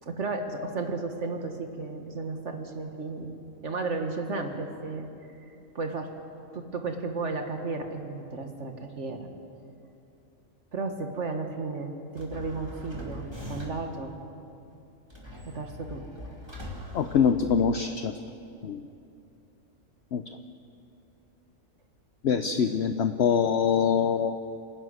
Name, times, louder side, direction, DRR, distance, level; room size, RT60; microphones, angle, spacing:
voice 1, 0.0-5.1 5.4-6.1 6.5-9.3 10.7-14.2 15.5-16.0 22.3-22.4, right 3 dB, 60° right, 5 dB, 2.0 m, -34 dB
sound 1, 12.1-14.0 15.1-18.0, left 1 dB, 20° right, 2.9 m, -41 dB
voice 2, 16.9-18.1 18.6-18.8 20.1-20.2 22.2-24.4, left 7 dB, 60° left, 8 dB, 0.9 m, -24 dB
27.0 x 12.0 x 9.5 m, 2.7 s
omnidirectional pair, 1.4 m